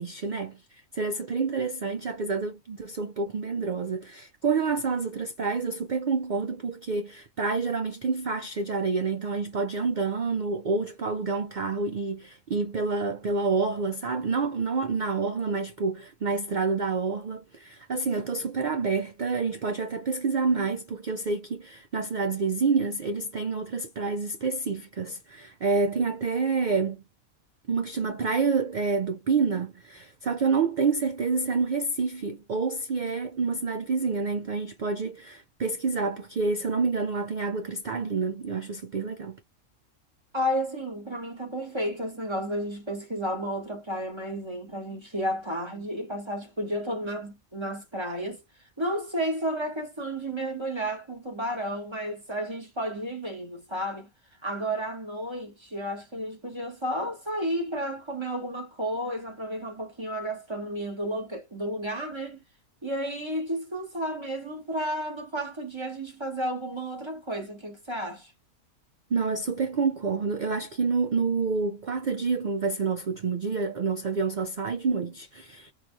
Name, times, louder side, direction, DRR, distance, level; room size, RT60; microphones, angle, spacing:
voice 1, 0.0-27.0 27.7-39.4 69.1-75.7, right 4 dB, 90° right, 0.4 m, -28 dB
voice 2, 40.3-48.4 48.8-54.1 54.4-62.4 62.8-68.3, equal, 20° right, 1.5 m, -32 dB
4.8 x 2.7 x 2.2 m
omnidirectional pair, 1.4 m